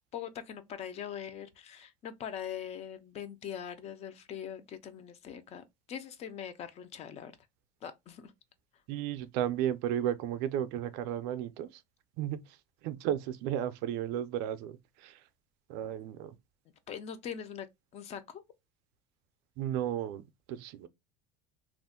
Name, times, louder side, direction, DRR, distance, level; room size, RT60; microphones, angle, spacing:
voice 1, 0.1-7.3 7.8-8.3 16.9-17.7 17.9-18.4, left 9 dB, 35° left, 0.4 m, -42 dB
voice 2, 8.9-11.8 12.2-15.2 15.7-16.4 19.6-20.9, right 11 dB, 65° right, 0.4 m, -34 dB
2.4 x 2.1 x 3.6 m
cardioid pair, 145°, 19 cm